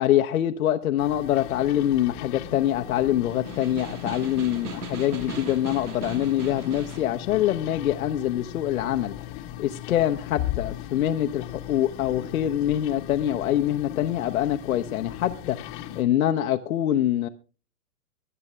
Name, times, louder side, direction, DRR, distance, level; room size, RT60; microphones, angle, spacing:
voice 1, 0.0-17.3, left 12 dB, 70° left, 1.0 m, -25 dB
sound 1, 1.0-16.0, left 12 dB, 30° left, 1.3 m, -37 dB
Snare drum, 3.3-7.1, right 4 dB, 85° right, 1.8 m, -38 dB
23.5 x 8.2 x 3.3 m
hypercardioid pair, 130°, 44 cm